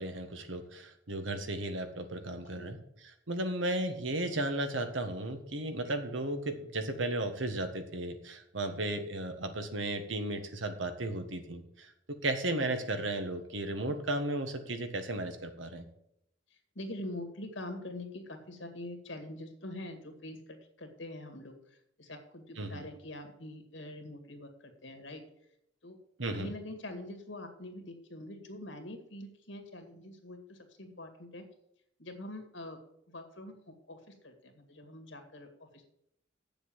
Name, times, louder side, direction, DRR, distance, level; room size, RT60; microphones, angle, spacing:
voice 1, 0.0-2.8 3.3-15.8 22.6-22.8 26.2-26.5, right 1 dB, 80° right, 7 dB, 1.4 m, -35 dB
voice 2, 16.5-25.5 25.8-26.0 26.3-31.5 32.0-32.8 33.1-35.9, left 1 dB, 75° left, 6 dB, 2.1 m, -45 dB
8.1 x 7.1 x 7.3 m, 0.78 s
head